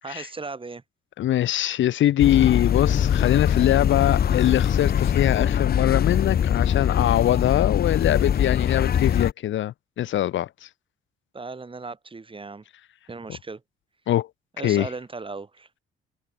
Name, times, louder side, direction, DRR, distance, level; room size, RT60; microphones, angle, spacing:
voice 1, 0.0-0.8 11.3-12.6 13.1-13.6 14.6-15.7, right 3 dB, 25° right, 7.3 m, -36 dB
voice 2, 1.2-10.7 14.1-14.3 14.6-14.9, left 12 dB, 70° left, 1.3 m, -23 dB
sound 1, 2.2-9.3, left 9 dB, 50° left, 1.0 m, -22 dB
cardioid pair, 90°, 20 cm